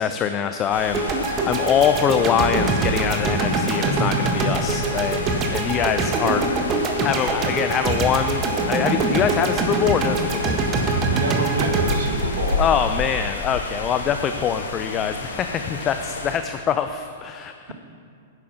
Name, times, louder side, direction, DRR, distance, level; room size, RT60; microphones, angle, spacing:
voice 1, 0.0-10.7 12.6-17.7, left 8 dB, 30° left, 8 dB, 0.5 m, -24 dB
sound 1, 0.7-16.4, left 3 dB, 75° left, 1.5 m, -31 dB
sound 2, 0.9-13.2, right 3 dB, 30° right, 1.4 m, -24 dB
voice 2, 11.0-12.6, right 4 dB, 65° right, 3 dB, 1.7 m, -26 dB
10.5 x 8.5 x 6.0 m, 2.4 s
figure-of-eight pair, 105°, 0 cm